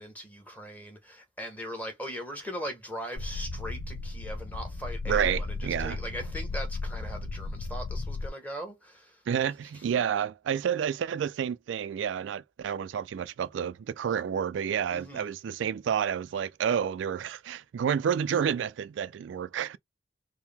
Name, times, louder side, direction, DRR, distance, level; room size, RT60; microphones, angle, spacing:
voice 1, 0.0-9.2 14.9-15.3, equal, 10° left, 1.2 m, -40 dB
sound 1, 3.2-8.3, left 3 dB, 55° left, 0.5 m, -35 dB
voice 2, 5.1-6.0 9.3-19.8, right 8 dB, 80° right, 0.3 m, -30 dB
4.5 x 2.1 x 3.4 m
head